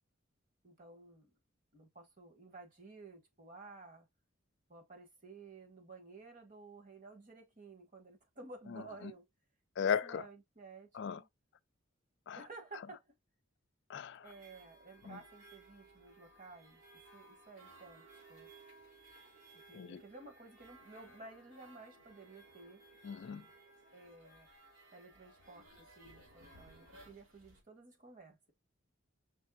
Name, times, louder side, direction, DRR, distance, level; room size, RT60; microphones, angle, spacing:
voice 1, 0.6-1.3 1.7-4.1 4.7-9.2 9.8-11.3 12.3-13.1 14.2-16.8 17.1-18.5 19.7-22.8 23.9-24.5 24.9-28.5, right 3 dB, 40° right, 1.4 m, -54 dB
voice 2, 9.8-10.2 11.0-11.2 12.3-12.4 13.9-14.2 15.1-15.2 19.7-20.0 23.0-23.4, left 7 dB, 55° left, 0.3 m, -36 dB
sound 1, 14.2-27.6, right 2 dB, 65° right, 2.5 m, -60 dB
5.5 x 3.4 x 2.3 m
head